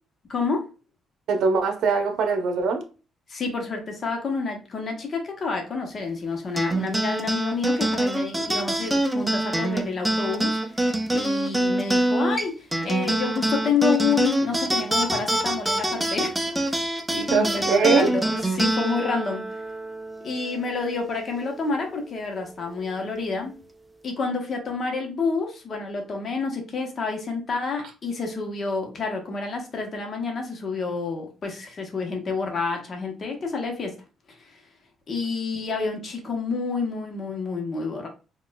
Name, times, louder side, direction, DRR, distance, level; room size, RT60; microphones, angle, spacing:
voice 1, 0.3-0.6 3.3-10.8 11.1-16.3 17.1-19.5 20.2-23.5 24.0-33.9 35.1-38.1, left 4 dB, 45° left, 0.9 m, -29 dB
voice 2, 1.3-2.8 17.3-18.3, right 4 dB, 75° right, 0.6 m, -22 dB
sound 1, 6.6-21.3, right 1 dB, 10° right, 0.4 m, -25 dB
4.2 x 2.3 x 2.2 m
cardioid pair, 90°, 0 cm